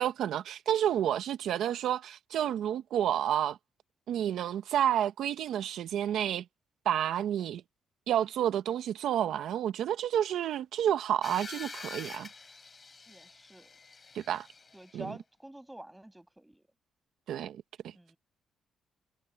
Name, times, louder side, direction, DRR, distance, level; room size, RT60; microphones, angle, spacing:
voice 1, 0.0-3.6 4.1-6.4 6.8-7.6 8.1-12.3 14.1-14.5 14.9-15.0 17.3-17.9, right 10 dB, 75° right, 1.3 m, -30 dB
sound 1, 11.2-15.0, left 4 dB, 30° left, 5.6 m, -46 dB
voice 2, 13.1-13.8 14.7-16.7 17.9-18.2, right 1 dB, 10° right, 7.6 m, -48 dB
cardioid pair, 90°, 0 cm